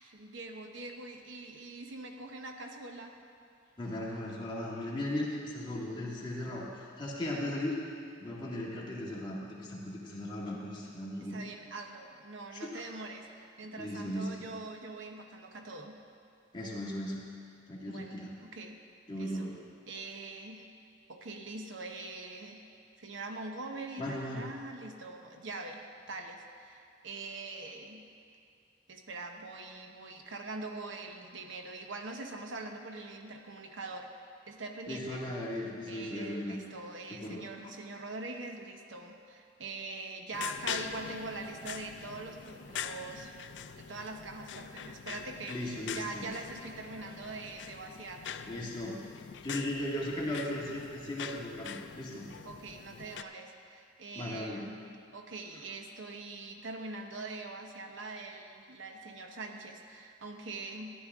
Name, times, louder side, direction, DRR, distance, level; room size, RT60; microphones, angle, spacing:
voice 1, 0.0-3.1 11.2-16.0 17.9-18.8 19.2-19.5 19.9-20.6 21.1-22.6 23.0-25.8 26.1-28.0 28.9-34.1 34.5-35.2 35.9-43.3 43.8-48.2 52.4-54.8 55.1-60.9, right 3 dB, 85° right, 3 dB, 1.0 m, -43 dB
voice 2, 3.8-7.8 8.2-11.4 12.5-12.8 13.8-14.5 16.5-17.3 17.7-18.3 19.1-19.6 24.0-24.5 34.9-36.6 37.1-37.5 45.5-46.3 48.5-49.0 49.4-52.3 54.2-54.7, left 1 dB, 25° left, -5 dB, 1.9 m, -37 dB
sound 1, 40.3-53.2, left 7 dB, 65° left, 0.4 m, -43 dB
14.5 x 11.0 x 3.7 m, 2.5 s
head